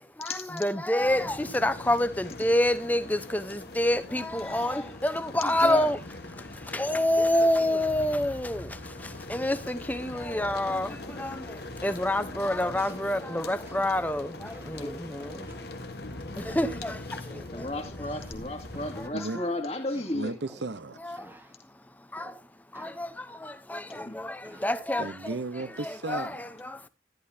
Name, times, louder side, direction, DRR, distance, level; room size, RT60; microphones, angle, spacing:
voice 1, 0.2-6.0 6.7-8.7 9.3-11.5 11.8-15.5 16.4-17.0 17.6-17.7 21.0-21.2 22.1-22.3 22.7-25.4 25.8-26.9, left 1 dB, 10° left, 0.8 m, -28 dB
sound 1, 1.0-19.1, left 2 dB, 65° left, 1.3 m, -42 dB
voice 2, 4.4-4.8 5.4-5.9 14.7-14.9 17.5-20.3 23.9-24.2, left 1 dB, 35° left, 2.1 m, -34 dB
sound 2, 11.0-11.4 11.9-12.1 12.7-13.1 13.7-13.9 14.5-14.8 15.5-16.0 16.4-16.8 17.3-17.6 18.0-18.5 18.7-19.1 19.9-20.8 21.2-21.6 22.2-22.5 22.7-23.1 23.9-24.8 25.6-25.9, right 1 dB, 10° right, 1.3 m, -52 dB
voice 3, 20.1-21.2 25.0-26.5, right 3 dB, 85° right, 0.9 m, -35 dB
13.5 x 11.0 x 2.7 m
head